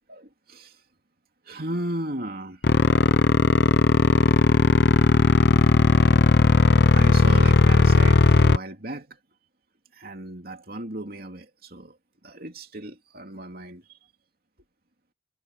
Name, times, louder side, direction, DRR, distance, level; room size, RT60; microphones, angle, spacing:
voice 1, 0.1-0.8 1.4-2.6 6.9-9.2 9.9-14.0, right 1 dB, 50° right, 2.9 m, -36 dB
sound 1, 2.6-8.6, left 3 dB, 60° left, 0.7 m, -17 dB
head